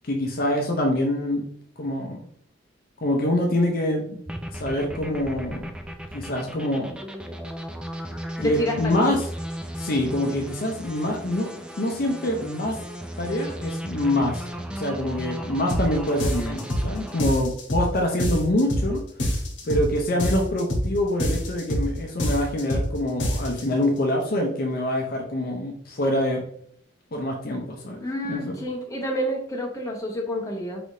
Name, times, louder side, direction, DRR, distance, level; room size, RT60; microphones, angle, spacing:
voice 1, 0.0-1.4 1.8-2.3 3.0-4.2 4.5-5.7 6.1-6.9 8.4-9.3 9.8-11.5 11.8-12.8 13.2-14.5 14.7-19.0 19.6-26.4 27.1-28.6, left 1 dB, 50° left, 2 dB, 0.6 m, -25 dB
sound 1, 4.3-17.2, equal, 5° right, 0.4 m, -35 dB
voice 2, 8.4-9.1 28.0-30.8, equal, 20° left, -1 dB, 1.0 m, -29 dB
sound 2, 15.7-15.9 16.2-16.9 17.2-17.9 18.2-18.9 19.2-19.9 20.2-20.9 21.2-21.9 22.2-22.9 23.2-23.6, equal, 70° left, 1.1 m, -25 dB
4.8 x 3.4 x 2.7 m, 0.65 s
head